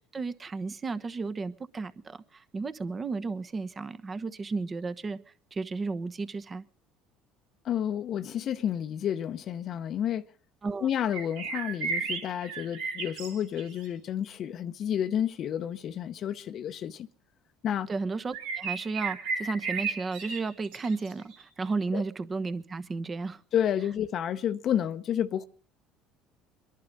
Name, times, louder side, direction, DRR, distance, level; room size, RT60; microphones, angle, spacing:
voice 1, 0.1-5.2 5.5-6.6 10.6-10.9 17.9-23.4, right 4 dB, 30° right, 1.1 m, -33 dB
voice 2, 7.6-10.2 10.8-17.1 17.6-17.9 21.9-22.0 23.5-25.5, left 9 dB, 55° left, 0.8 m, -30 dB
sound 1, 11.1-13.9 18.3-21.4, right 5 dB, 90° right, 3.9 m, -34 dB
22.5 x 11.5 x 5.3 m
supercardioid pair, 85°, 0 cm